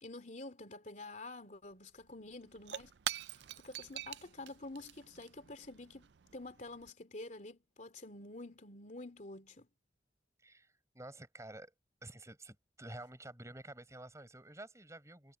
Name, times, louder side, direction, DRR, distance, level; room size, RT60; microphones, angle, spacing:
voice 1, 0.0-2.9 3.2-6.1 6.3-9.7, left 2 dB, 45° left, 3.0 m, -48 dB
Shatter / Crushing, 1.7-1.8 2.0-6.9, right 11 dB, 80° right, 0.5 m, -46 dB
voice 2, 10.4-11.7 12.0-15.4, right 1 dB, 15° right, 7.8 m, -50 dB
head